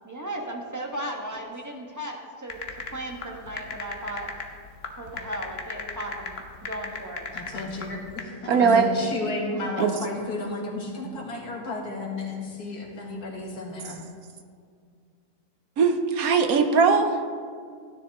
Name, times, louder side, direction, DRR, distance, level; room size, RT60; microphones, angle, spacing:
voice 1, 0.0-2.6 2.9-4.3 5.0-7.3, right 1 dB, 10° right, 0 dB, 1.2 m, -36 dB
sound 1, 2.5-8.2, left 4 dB, 45° left, 1.2 m, -35 dB
voice 2, 7.3-14.0, left 3 dB, 75° left, -1 dB, 2.3 m, -33 dB
voice 3, 8.5-8.9 9.8-9.9 11.0-11.1 15.8-17.2, right 5 dB, 70° right, 6 dB, 1.3 m, -20 dB
16.0 x 10.0 x 3.6 m, 2.2 s
omnidirectional pair, 1.6 m